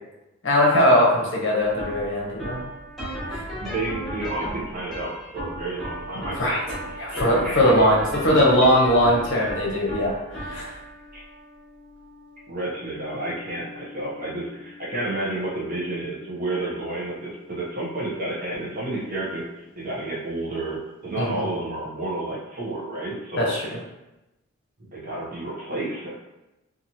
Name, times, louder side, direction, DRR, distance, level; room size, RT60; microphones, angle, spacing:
voice 1, 0.4-2.6 3.3-3.4 6.4-6.6 7.0-8.0 8.2-10.7 21.2-21.4 23.4-23.6, equal, 60° left, -3 dB, 0.7 m, -20 dB
sound 1, 1.6-18.8, equal, ahead, 1.0 m, -37 dB
voice 2, 3.6-7.7 11.1-11.2 12.5-19.5 19.8-23.5 24.8-26.2, right 2 dB, 40° right, -5 dB, 0.7 m, -31 dB
2.8 x 2.4 x 2.7 m, 0.97 s
head